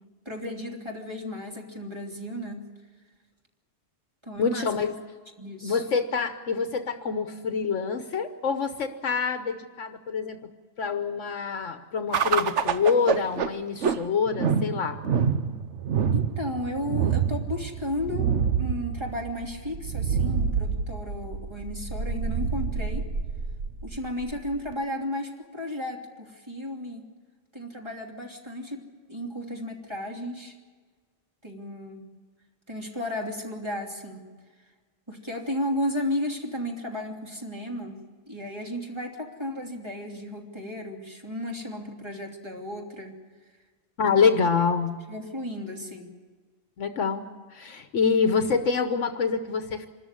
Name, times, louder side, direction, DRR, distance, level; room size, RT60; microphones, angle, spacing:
voice 1, 0.2-2.6 4.2-4.8 5.4-5.8 16.1-23.1 23.8-27.1 27.5-28.8 29.1-30.5 31.4-32.0 32.7-34.3 35.1-38.0 38.3-43.2 44.2-44.5 45.1-46.1, left 1 dB, 20° right, 0 dB, 3.0 m, -34 dB
voice 2, 4.4-4.9 5.6-10.5 10.8-15.0 44.0-45.0 46.8-47.3 47.5-49.9, left 5 dB, 75° left, 7 dB, 1.3 m, -26 dB
sound 1, 12.1-24.7, right 6 dB, 65° right, 1.2 m, -27 dB
26.0 x 13.5 x 9.7 m, 1.5 s
omnidirectional pair, 1.3 m